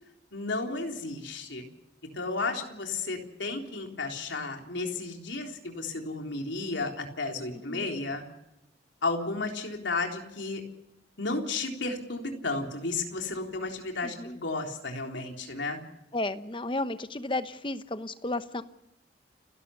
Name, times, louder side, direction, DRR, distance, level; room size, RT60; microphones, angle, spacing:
voice 1, 0.3-1.6 2.1-8.2 9.0-10.6 11.2-15.8, left 3 dB, 85° left, 3 dB, 3.7 m, -33 dB
voice 2, 14.0-14.4 16.1-18.6, left 2 dB, 25° left, 11 dB, 1.0 m, -33 dB
30.0 x 12.0 x 7.1 m, 0.88 s
head